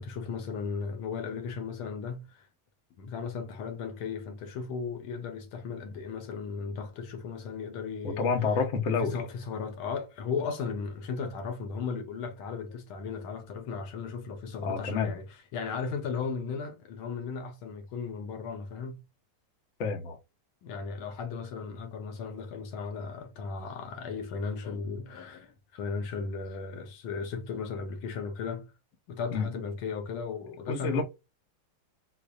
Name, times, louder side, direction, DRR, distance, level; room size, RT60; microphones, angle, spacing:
voice 1, 0.0-2.5 3.0-8.3 8.9-15.3 15.5-19.0 20.6-28.7 29.1-31.0, left 5 dB, 75° left, 1.6 m, -36 dB
voice 2, 8.0-9.1 14.6-15.1 19.8-20.2 29.3-29.5 30.7-31.0, left 5 dB, 55° left, 0.8 m, -28 dB
4.3 x 2.5 x 2.4 m
omnidirectional pair, 2.3 m